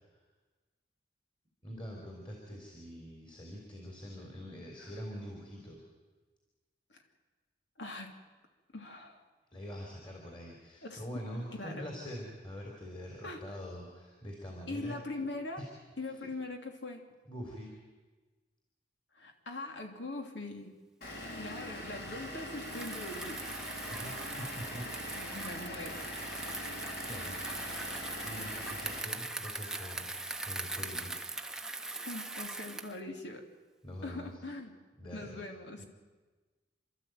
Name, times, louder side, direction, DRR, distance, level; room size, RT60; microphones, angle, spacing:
voice 1, 1.6-5.8 9.5-15.0 15.6-15.7 16.1-16.2 17.3-17.7 23.9-24.9 26.6-27.4 28.2-31.1 33.8-34.4 35.0-35.4 35.8-35.9, equal, 25° left, 0 dB, 3.8 m, -44 dB
voice 2, 7.8-8.2 8.7-9.2 10.8-11.0 11.6-11.9 13.2-13.4 14.7-15.6 16.0-17.0 19.1-20.7 21.4-23.5 25.1-26.1 27.4-27.5 32.0-33.4 34.0-34.8 35.1-35.8, left 2 dB, 80° left, 4 dB, 3.0 m, -42 dB
Vehicle / Engine, 21.0-29.0, left 1 dB, 60° left, 4.0 m, -43 dB
Bicycle, 22.5-33.0, right 2 dB, 5° right, 0.9 m, -41 dB
28.5 x 13.0 x 9.2 m, 1.3 s
head